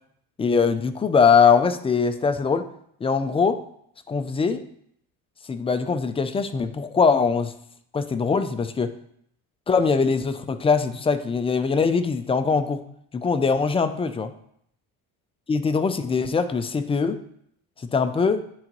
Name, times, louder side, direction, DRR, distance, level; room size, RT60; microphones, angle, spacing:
voice 1, 0.4-2.7 3.0-3.6 4.1-4.7 5.5-7.5 7.9-8.9 9.7-12.8 13.1-14.3 15.5-17.2 17.9-18.4, left 5 dB, 15° left, 9 dB, 0.3 m, -22 dB
10.5 x 3.9 x 3.0 m, 0.70 s
cardioid pair, 110°, 39 cm